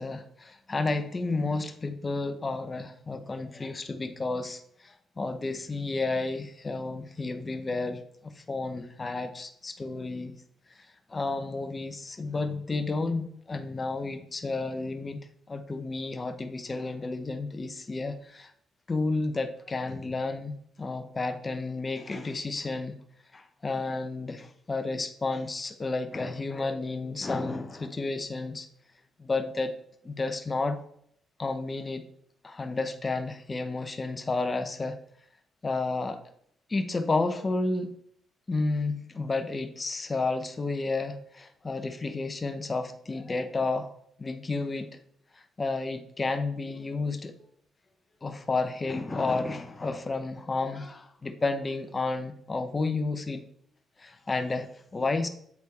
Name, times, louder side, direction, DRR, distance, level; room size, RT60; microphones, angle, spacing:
voice 1, 0.0-10.3 11.1-15.2 15.5-18.5 18.9-22.9 23.3-28.7 29.2-29.7 30.0-30.8 31.4-32.0 32.4-35.0 35.6-36.2 36.7-38.0 38.5-43.9 44.2-44.9 45.6-47.4 48.2-53.4 54.0-55.3, left 3 dB, 25° left, 8 dB, 0.9 m, -31 dB
8.2 x 4.3 x 4.2 m, 0.68 s
cardioid pair, 90°, 0 cm